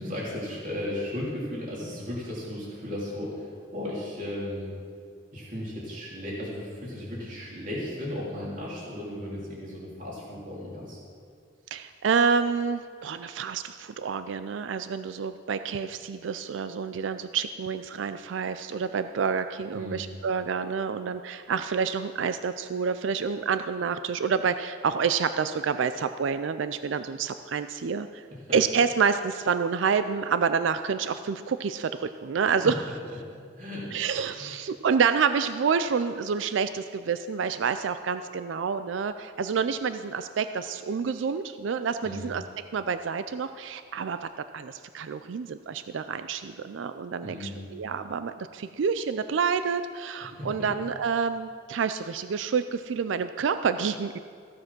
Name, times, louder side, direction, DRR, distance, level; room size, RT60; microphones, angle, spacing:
voice 1, 0.0-4.7 5.3-11.0 19.7-20.1 33.6-33.9 34.4-34.5 42.0-42.3 47.2-47.7 50.3-50.5, left 1 dB, 40° right, -5 dB, 3.3 m, -35 dB
voice 2, 11.7-28.2 28.5-32.8 33.9-42.4 42.7-44.3 44.5-54.2, right 6 dB, 80° right, 11 dB, 0.4 m, -28 dB
15.0 x 7.6 x 6.0 m, 2.1 s
head